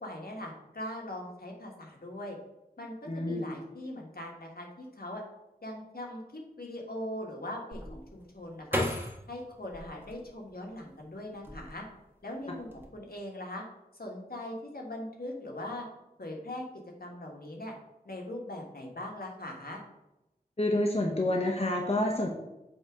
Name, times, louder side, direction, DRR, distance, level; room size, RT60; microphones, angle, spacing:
voice 1, 0.0-2.4 2.8-5.2 5.6-8.8 9.3-11.8 12.2-13.6 14.0-15.9 16.2-16.6 17.0-17.7 18.0-19.8, left 1 dB, 75° left, -1 dB, 1.6 m, -40 dB
voice 2, 3.1-3.5 20.6-22.3, left 1 dB, 40° left, 0 dB, 0.9 m, -28 dB
sound 1, 7.7-10.8 11.3-12.1 12.4-12.8, left 1 dB, 15° right, 1.5 m, -36 dB
7.9 x 3.5 x 5.1 m, 0.92 s
wide cardioid pair, 50°, 16 cm